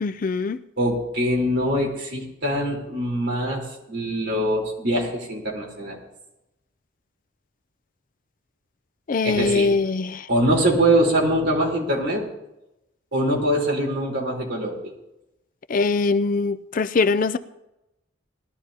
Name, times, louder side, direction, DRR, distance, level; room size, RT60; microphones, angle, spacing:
voice 1, 0.0-0.6 9.1-10.3 15.7-17.4, left 4 dB, 45° left, 0.4 m, -22 dB
voice 2, 0.8-6.0 9.2-9.8 10.3-12.3 13.1-14.8, right 1 dB, 60° right, 3.9 m, -23 dB
20.0 x 13.0 x 2.8 m
head